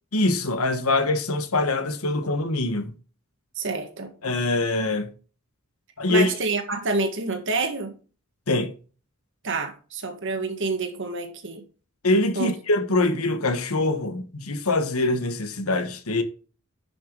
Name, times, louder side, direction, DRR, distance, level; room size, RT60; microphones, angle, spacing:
voice 1, 0.1-2.9 4.2-5.1 6.0-6.3 8.5-8.7 12.0-16.2, left 2 dB, 90° left, 1.4 m, -24 dB
voice 2, 3.5-4.1 6.1-7.9 9.4-11.6 12.3-12.5, right 3 dB, 60° right, 1.8 m, -28 dB
10.5 x 6.3 x 3.8 m
head